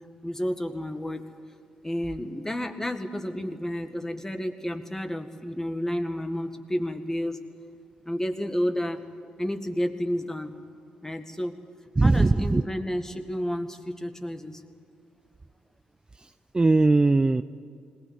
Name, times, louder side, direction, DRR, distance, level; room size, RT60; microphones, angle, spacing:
voice 1, 0.2-1.2 1.8-7.4 8.1-9.0 9.4-10.5 11.0-11.6 12.0-14.6, equal, 15° left, 7 dB, 1.9 m, -31 dB
voice 2, 12.0-12.6 16.5-17.4, right 3 dB, 25° right, 11 dB, 0.5 m, -19 dB
20.5 x 18.5 x 8.3 m, 2.3 s
hypercardioid pair, 50°, 4 cm